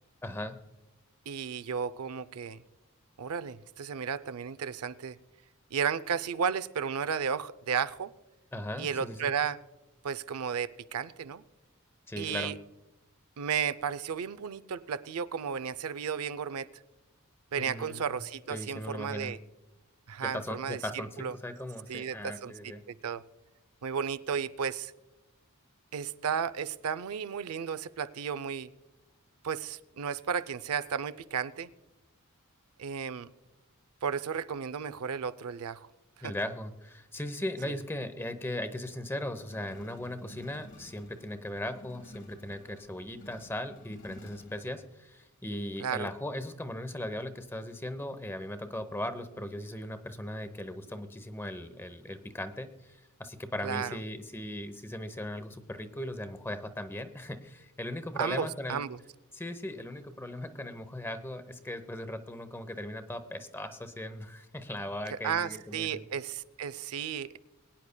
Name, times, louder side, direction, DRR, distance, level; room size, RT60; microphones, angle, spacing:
voice 1, 0.2-0.6 8.5-9.3 12.1-12.6 17.6-18.2 18.5-19.4 20.2-22.8 36.2-58.8 59.3-66.1, left 1 dB, 10° left, 10 dB, 0.8 m, -38 dB
voice 2, 1.3-2.6 3.2-5.2 5.7-8.1 8.8-9.6 10.0-11.4 12.2-12.5 13.4-16.7 17.5-19.4 20.1-20.8 21.2-21.3 21.9-22.7 23.0-23.2 23.8-24.9 25.9-28.7 29.4-31.7 32.8-33.3 34.0-35.9 36.2-36.3 45.8-46.1 53.6-54.0 58.2-59.0 65.1-67.4, right 7 dB, 85° right, 14 dB, 0.5 m, -33 dB
sound 1, 39.5-44.6, left 1 dB, 55° left, 1.5 m, -51 dB
22.5 x 9.9 x 2.2 m, 1.0 s
head